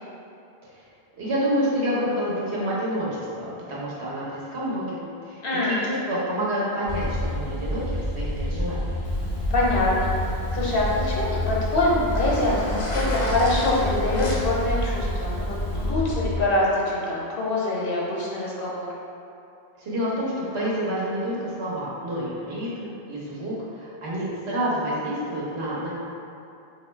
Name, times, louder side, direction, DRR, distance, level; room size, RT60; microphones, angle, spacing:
voice 1, 1.2-9.0 19.8-25.9, equal, 90° right, -7 dB, 1.2 m, -28 dB
voice 2, 5.4-5.8 9.5-18.9, left 2 dB, 65° left, -5 dB, 0.9 m, -25 dB
sound 1, 6.9-16.4, left 1 dB, 50° right, 0.7 m, -28 dB
Zipper (clothing), 9.0-15.9, left 1 dB, 40° left, 0.6 m, -35 dB
3.0 x 2.7 x 4.3 m, 2.7 s
omnidirectional pair, 1.1 m